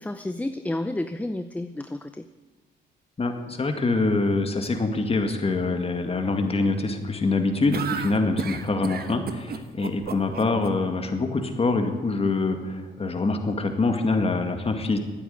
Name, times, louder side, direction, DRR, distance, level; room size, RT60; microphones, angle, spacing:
voice 1, 0.0-2.3, left 1 dB, 5° left, 10 dB, 0.6 m, -31 dB
voice 2, 3.2-15.0, left 3 dB, 30° left, 5 dB, 2.1 m, -25 dB
sound 1, 7.7-10.7, right 6 dB, 50° right, 1.1 m, -32 dB
12.5 x 9.5 x 9.4 m, 1.2 s
cardioid pair, 90°, 20 cm